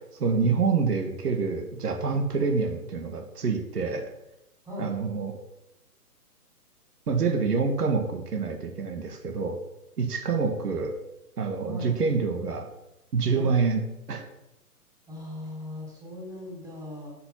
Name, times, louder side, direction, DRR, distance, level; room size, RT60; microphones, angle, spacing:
voice 1, 0.0-4.1 4.8-5.4 7.1-9.6 10.0-10.9 11.4-12.7 13.1-13.8 14.1-14.3, right 5 dB, 75° right, 4 dB, 1.8 m, -27 dB
voice 2, 4.7-5.0 11.6-11.9 13.3-13.6 15.1-17.1, left 1 dB, 10° right, -6 dB, 3.7 m, -38 dB
8.0 x 6.1 x 5.8 m, 0.92 s
hypercardioid pair, 145°, 47 cm